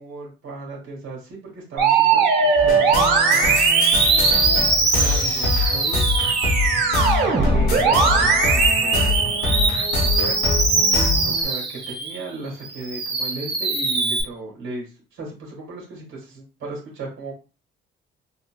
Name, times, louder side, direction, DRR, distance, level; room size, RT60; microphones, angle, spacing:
voice 1, 0.0-3.5 4.4-6.1 7.3-9.7 10.1-10.4 11.0-17.3, right 2 dB, 80° right, -2 dB, 1.5 m, -36 dB
Musical instrument, 1.8-12.2 12.7-14.2, right 4 dB, 55° right, 1.4 m, -20 dB
sound 1, 2.6-11.4, left 3 dB, 90° left, 1.0 m, -24 dB
3.8 x 2.3 x 2.2 m, 0.32 s
cardioid pair, 90°, 20 cm